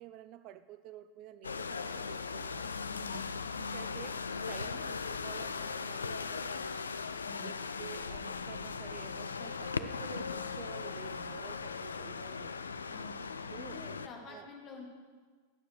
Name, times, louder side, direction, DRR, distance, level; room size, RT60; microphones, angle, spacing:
voice 1, 0.0-6.9 7.4-12.5 13.5-13.8 14.3-14.5, right 12 dB, 40° right, 13 dB, 0.3 m, -50 dB
sound 1, 1.4-14.1, left 5 dB, 75° left, 0.4 m, -38 dB
voice 2, 2.9-3.2 7.2-7.5 12.9-13.2 13.5-14.9, left 4 dB, 30° left, 1 dB, 1.9 m, -48 dB
10.5 x 6.9 x 4.5 m, 1.5 s
figure-of-eight pair, 90°, 0 cm